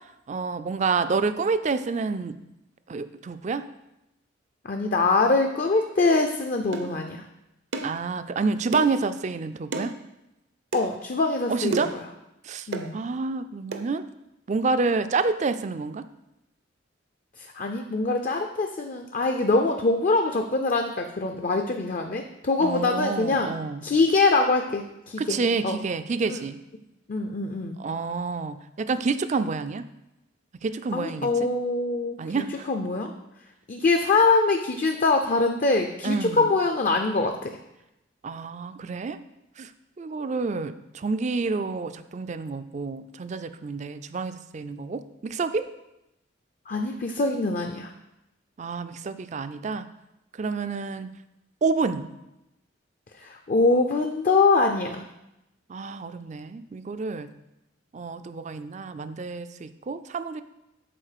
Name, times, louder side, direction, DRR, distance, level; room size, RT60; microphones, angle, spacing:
voice 1, 0.3-2.4 2.9-3.7 7.8-9.9 11.5-11.9 12.4-14.1 14.5-16.0 22.6-23.8 25.2-26.6 27.8-29.8 30.6-31.5 32.2-32.7 36.0-36.4 38.2-39.2 39.6-39.7 40.0-45.7 48.6-49.9 50.4-51.1 51.6-52.1 55.7-57.3 57.9-60.4, right 4 dB, 35° right, 11 dB, 0.4 m, -28 dB
voice 2, 4.6-7.2 10.7-11.9 12.7-13.0 17.4-23.5 23.8-25.4 25.6-25.8 26.3-26.4 27.1-27.8 30.9-33.1 33.7-37.5 46.7-47.9 53.1-55.1, left 3 dB, 40° left, 5 dB, 0.5 m, -24 dB
sound 1, 6.7-6.9 7.7-8.0 8.7-9.0 9.7-9.9 10.7-10.9 11.7-12.0 12.7-12.9 13.7-13.9, right 3 dB, 65° right, 0.7 m, -31 dB
7.6 x 4.4 x 6.6 m, 0.89 s
head